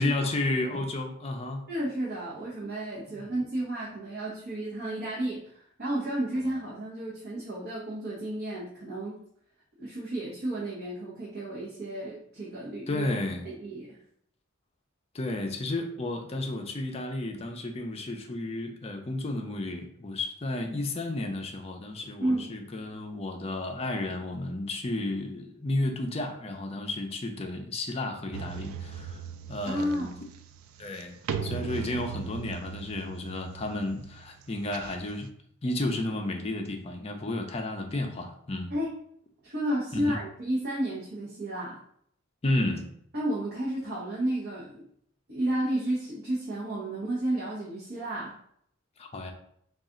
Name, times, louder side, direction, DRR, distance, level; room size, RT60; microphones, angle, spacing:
voice 1, 0.0-1.7 3.1-3.3 12.9-13.4 15.1-29.2 29.5-30.1 30.8-31.2 31.4-35.3 35.6-38.7 39.9-40.2 42.4-42.8 49.0-49.3, left 2 dB, 30° left, 3 dB, 0.5 m, -32 dB
voice 2, 1.7-9.2 9.8-13.1 13.4-14.0 22.2-22.6 29.6-30.1 38.7-38.9 39.4-41.8 43.1-44.8 45.3-48.3, right 1 dB, 50° right, -6 dB, 0.9 m, -32 dB
sound 1, 28.3-35.3, right 7 dB, 80° right, 0.3 m, -39 dB
4.0 x 2.4 x 3.6 m, 0.67 s
head